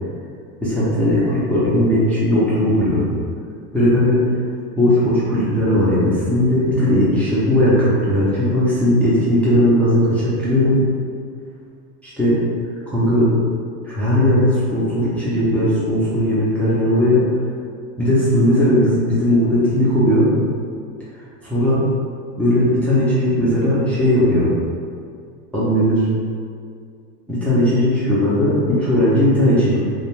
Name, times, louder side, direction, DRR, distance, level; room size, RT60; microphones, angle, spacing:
voice 1, 0.6-3.1 3.7-4.2 4.8-10.8 12.0-12.4 12.9-13.4 13.8-17.2 18.0-20.3 21.4-21.8 22.4-24.5 25.5-26.1 27.3-29.8, left 1 dB, 5° left, -10 dB, 0.4 m, -17 dB
2.5 x 2.2 x 3.0 m, 2.2 s
supercardioid pair, 110°, 46 cm